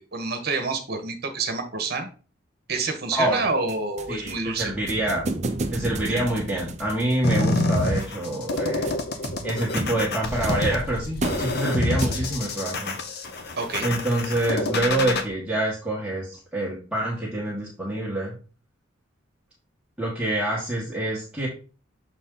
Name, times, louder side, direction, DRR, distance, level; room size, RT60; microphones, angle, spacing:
voice 1, 0.0-2.1 2.7-4.7 6.0-6.3 13.6-13.9, right 3 dB, 50° right, 6 dB, 1.2 m, -28 dB
voice 2, 3.1-3.4 4.1-5.3 5.7-9.0 9.4-13.0 13.8-18.3 20.0-21.5, right 1 dB, 5° right, -7 dB, 1.5 m, -26 dB
sound 1, 3.7-12.6, right 2 dB, 35° right, 0.6 m, -33 dB
sound 2, 7.2-15.2, left 2 dB, 50° left, 0.8 m, -27 dB
6.7 x 4.2 x 3.8 m, 0.36 s
head